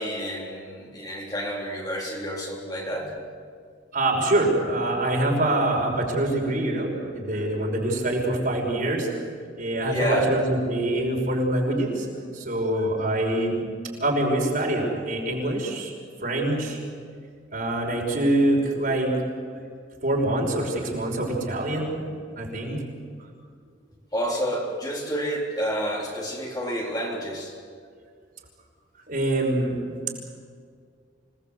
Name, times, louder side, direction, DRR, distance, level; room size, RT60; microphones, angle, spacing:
voice 1, 0.0-3.1 9.9-10.3 24.1-27.5, equal, 20° left, -2 dB, 3.5 m, -29 dB
voice 2, 3.9-9.1 9.6-12.1 12.3-13.7 14.0-15.9 16.2-16.8 17.5-19.1 20.0-22.0 22.4-22.8 29.1-29.8, right 1 dB, 50° right, -1 dB, 5.9 m, -25 dB
27.0 x 19.5 x 8.0 m, 2.1 s
head